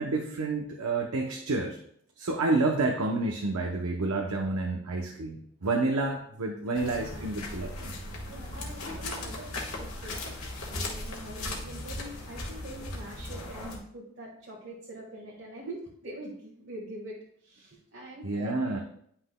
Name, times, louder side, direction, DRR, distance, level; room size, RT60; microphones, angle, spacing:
voice 1, 0.0-1.8 2.2-7.9 18.2-18.8, right 3 dB, 85° right, 2 dB, 0.7 m, -29 dB
voice 2, 5.6-6.0 6.7-7.3 8.3-10.3 10.7-17.2 17.4-18.8, right 1 dB, 60° right, -4 dB, 1.5 m, -44 dB
sound 1, 6.7-13.8, left 2 dB, 75° left, 1.4 m, -38 dB
10.0 x 5.7 x 2.2 m, 0.67 s
head